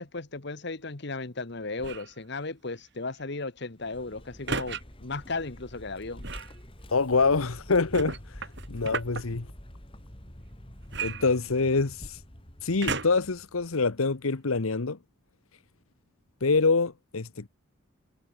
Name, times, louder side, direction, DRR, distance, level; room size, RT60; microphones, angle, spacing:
voice 1, 0.0-6.2, left 3 dB, 55° left, 1.3 m, -35 dB
sound 1, 1.8-2.2 4.5-4.8 6.2-6.6 7.9-9.2 10.9-11.9 12.8-13.3 14.0-14.1, right 4 dB, 55° right, 5.9 m, -34 dB
Vehicle, 3.7-14.1, equal, 25° left, 3.4 m, -47 dB
voice 2, 6.9-8.2 8.7-9.5 11.0-12.2 12.6-15.0 16.4-17.5, left 4 dB, 90° left, 1.1 m, -25 dB
head